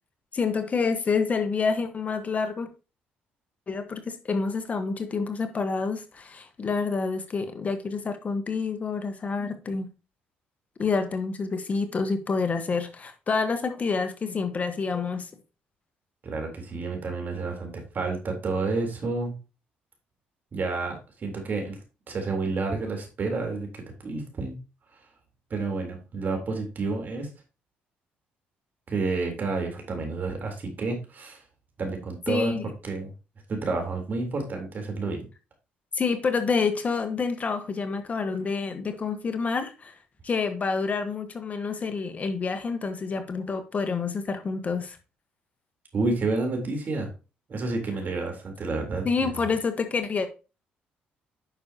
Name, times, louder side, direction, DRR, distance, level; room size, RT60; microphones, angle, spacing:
voice 1, 0.3-2.7 3.7-9.9 10.8-15.3 32.3-32.7 35.9-40.0 40.2-45.0 49.0-50.3, left 4 dB, 40° left, 1.3 m, -28 dB
voice 2, 16.2-19.3 20.5-21.8 22.1-24.6 25.5-27.3 28.9-31.4 31.8-32.5 32.8-33.1 33.5-35.3 45.9-47.1 47.5-49.5, right 3 dB, 50° right, 3.7 m, -30 dB
9.5 x 6.3 x 2.9 m
supercardioid pair, 75°, 4 cm